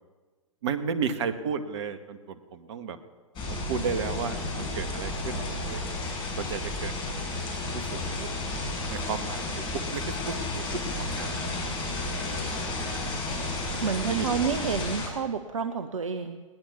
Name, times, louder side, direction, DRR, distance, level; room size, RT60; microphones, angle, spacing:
voice 1, 0.6-3.0 3.4-5.8 6.4-6.9 7.7-8.3 8.9-9.6 9.9-12.4 13.7-14.3, right 6 dB, 55° right, 10 dB, 2.1 m, -34 dB
sound 1, 3.4-15.1, left 2 dB, 30° left, 6.5 m, -32 dB
voice 2, 13.8-16.4, right 6 dB, 70° right, 9 dB, 1.2 m, -29 dB
21.0 x 18.5 x 7.0 m, 1.4 s
figure-of-eight pair, 110°, 17 cm